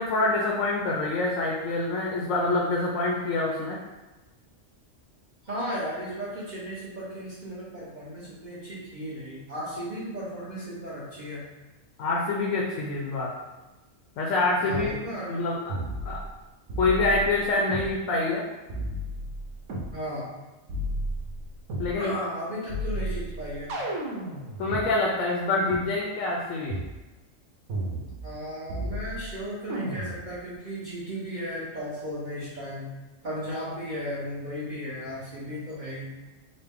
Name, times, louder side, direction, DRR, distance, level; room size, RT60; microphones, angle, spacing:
voice 1, 0.0-3.8 12.0-13.3 14.2-15.0 15.3-15.8 16.0-16.2 16.8-18.5 21.8-22.1 24.6-26.7, left 2 dB, 85° left, -2 dB, 1.0 m, -26 dB
voice 2, 5.4-11.4 14.6-15.3 19.9-20.3 22.0-23.7 28.2-32.9 33.2-36.1, equal, 40° right, -9 dB, 0.8 m, -35 dB
sound 1, 14.7-14.9 15.7-16.4 16.7-17.9 18.7-19.9 20.7-21.9 22.7-24.8 25.7-25.8 26.7-26.9 27.7-28.4 28.7-29.3 29.7-30.3, right 1 dB, 75° right, 1.1 m, -33 dB
4.0 x 2.1 x 3.5 m, 1.1 s
omnidirectional pair, 1.3 m